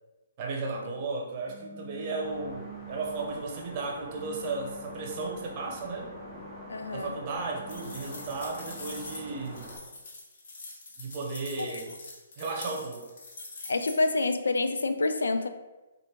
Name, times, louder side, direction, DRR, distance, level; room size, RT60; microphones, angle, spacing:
voice 1, 0.4-6.1 6.9-9.7 11.0-11.9 12.4-13.1, right 3 dB, 40° right, 0 dB, 0.8 m, -35 dB
sound 1, 1.5-3.5 4.1-6.8 7.4-9.7, right 3 dB, 10° right, 0.5 m, -48 dB
sound 2, 2.2-9.8, equal, 10° left, 0.8 m, -46 dB
voice 2, 6.7-7.2 11.6-11.8 13.7-15.5, left 3 dB, 85° left, 8 dB, 0.3 m, -27 dB
sound 3, 7.7-14.2, left 3 dB, 60° left, 1.0 m, -44 dB
4.7 x 2.5 x 2.9 m, 1.1 s
hypercardioid pair, 145°, 0 cm